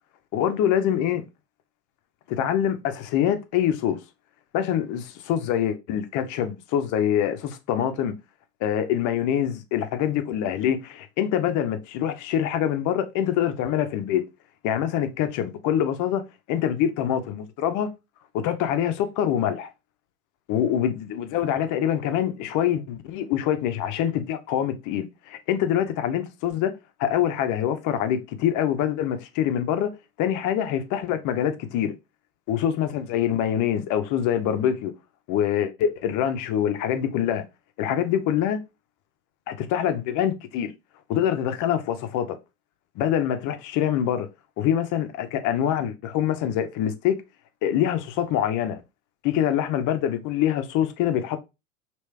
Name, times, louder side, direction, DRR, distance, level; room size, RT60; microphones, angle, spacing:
voice 1, 0.3-1.2 2.3-4.0 4.5-8.1 8.6-14.2 14.6-16.2 16.5-17.9 18.3-19.7 20.5-26.7 27.0-29.9 30.2-31.9 32.5-34.9 35.3-37.4 37.8-38.6 39.5-40.7 41.1-42.3 43.0-44.3 44.6-47.2 47.6-48.8 49.2-51.4, left 10 dB, 45° left, 0.7 m, -25 dB
3.2 x 3.0 x 3.1 m
hypercardioid pair, 85°, 43 cm